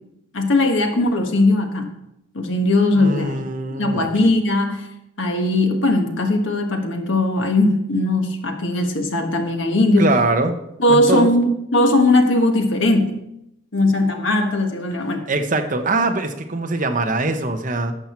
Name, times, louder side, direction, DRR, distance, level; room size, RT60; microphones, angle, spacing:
voice 1, 0.3-1.9 2.3-3.4 3.8-4.8 5.2-10.1 10.8-13.0 13.7-15.2, left 2 dB, 65° left, 4 dB, 1.4 m, -19 dB
voice 2, 2.9-4.1 10.0-10.5 10.9-11.3 15.3-17.9, right 2 dB, 40° right, 7 dB, 0.8 m, -22 dB
11.5 x 7.3 x 4.4 m, 0.82 s
head